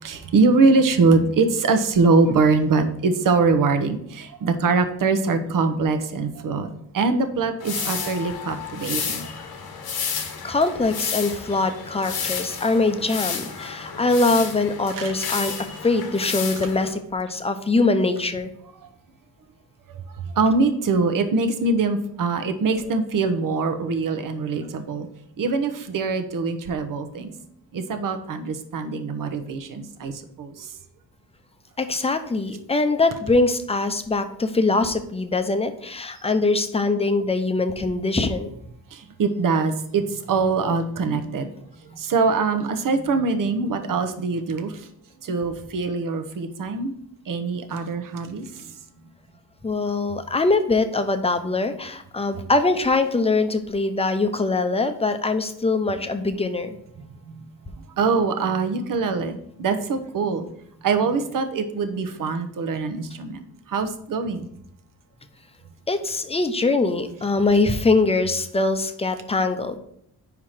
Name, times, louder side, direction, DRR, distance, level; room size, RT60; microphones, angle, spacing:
voice 1, 0.0-9.2 14.9-15.1 20.4-25.1 25.4-27.3 27.7-30.1 30.4-30.6 38.9-41.5 41.9-44.7 45.2-46.9 47.3-48.4 58.0-60.4 60.8-63.4 63.7-64.5, right 4 dB, 55° right, 8 dB, 0.9 m, -23 dB
sound 1, 7.6-16.9, left 6 dB, 70° left, 1.2 m, -31 dB
voice 2, 10.4-15.5 15.8-18.5 31.8-38.5 49.6-56.8 65.9-69.8, left 3 dB, 15° left, 8 dB, 0.7 m, -22 dB
5.0 x 4.7 x 5.7 m, 0.70 s
cardioid pair, 85°, 38 cm